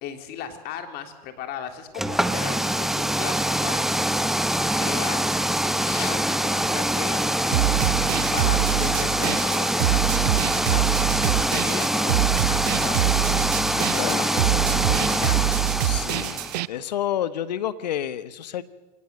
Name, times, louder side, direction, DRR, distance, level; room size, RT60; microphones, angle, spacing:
voice 1, 0.0-4.0 4.8-5.2 5.8-8.0 8.3-15.6, left 8 dB, 50° left, 7 dB, 3.6 m, -36 dB
sound 1, 1.9-16.6, right 1 dB, ahead, 1.1 m, -24 dB
voice 2, 5.8-6.1 8.6-8.8 14.0-14.3 15.8-16.4 16.7-18.6, left 11 dB, 80° left, 15 dB, 1.3 m, -30 dB
sound 2, 7.5-16.7, right 17 dB, 70° right, 0.6 m, -25 dB
24.0 x 18.5 x 7.8 m, 1.2 s
hypercardioid pair, 100°, 21 cm